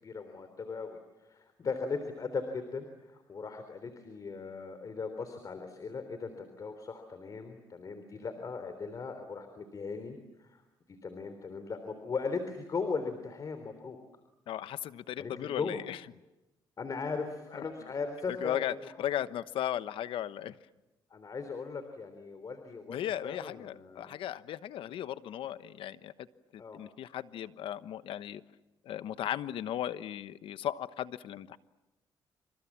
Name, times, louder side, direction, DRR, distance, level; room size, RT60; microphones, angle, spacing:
voice 1, 0.0-10.6 11.0-14.0 15.2-15.8 16.8-18.9 21.1-24.1 26.6-26.8, left 4 dB, 40° left, 8 dB, 3.6 m, -38 dB
voice 2, 14.5-16.0 18.3-20.6 22.9-26.1 26.5-28.4 28.8-31.6, left 11 dB, 75° left, 13 dB, 1.1 m, -36 dB
29.0 x 27.5 x 7.5 m, 1.0 s
cardioid pair, 95°, 9 cm